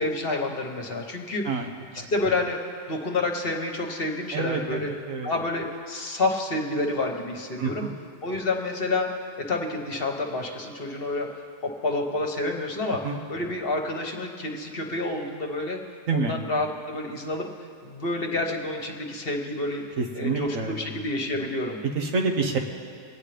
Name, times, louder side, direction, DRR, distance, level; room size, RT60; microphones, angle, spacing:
voice 1, 0.0-1.7 1.9-2.6 2.9-4.9 5.2-7.9 8.2-9.1 9.5-11.3 11.6-13.0 13.3-15.8 16.1-17.5 17.8-21.8, left 2 dB, 45° left, 2 dB, 1.3 m, -29 dB
voice 2, 4.3-5.3 7.6-8.0 13.0-13.2 16.1-16.4 20.0-20.9 21.9-22.6, right 4 dB, 75° right, 2 dB, 1.4 m, -28 dB
24.0 x 9.1 x 3.4 m, 2.2 s
omnidirectional pair, 1.4 m